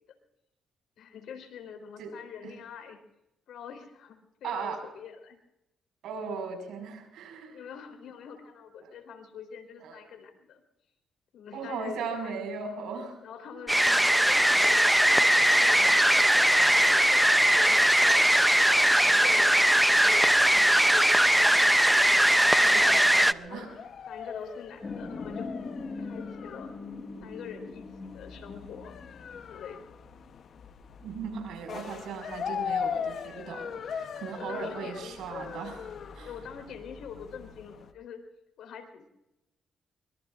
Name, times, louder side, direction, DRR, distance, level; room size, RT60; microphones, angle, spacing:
voice 1, 1.0-3.0 3.5-5.4 7.5-10.6 11.3-12.3 13.2-16.2 16.7-17.8 18.6-21.6 22.6-22.9 23.4-23.7 24.1-25.5 26.0-26.7 27.2-28.9 29.5-29.8 34.4-35.4 36.2-38.2 38.6-39.1, left 7 dB, 80° left, 6 dB, 3.5 m, -45 dB
voice 2, 4.4-4.8 6.0-7.7 8.8-8.9 9.8-10.0 11.5-13.2 13.5-13.6 22.6-23.8 31.0-36.3, right 5 dB, 85° right, 4 dB, 5.3 m, -38 dB
sound 1, 13.7-23.3, right 1 dB, 5° right, 0.5 m, -20 dB
sound 2, 18.8-37.9, left 7 dB, 60° left, 0.9 m, -40 dB
sound 3, 24.8-29.8, left 3 dB, 35° left, 4.7 m, -40 dB
24.0 x 23.5 x 2.5 m, 0.91 s
cardioid pair, 85°, 0 cm